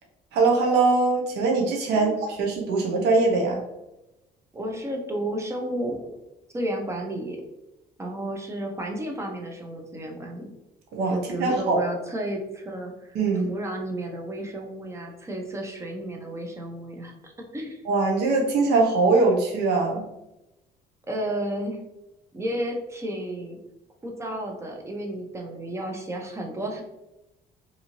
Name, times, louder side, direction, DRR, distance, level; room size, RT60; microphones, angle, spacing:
voice 1, 0.3-3.6 10.9-11.8 13.1-13.5 17.8-20.0, right 3 dB, 75° right, 0 dB, 0.7 m, -22 dB
voice 2, 4.5-6.1 6.5-7.4 8.0-10.5 11.1-13.2 13.5-17.8 21.1-21.8 22.3-23.6 24.0-26.8, right 1 dB, 15° right, 2 dB, 0.6 m, -32 dB
2.6 x 2.5 x 2.9 m, 0.93 s
cardioid pair, 110°, 17 cm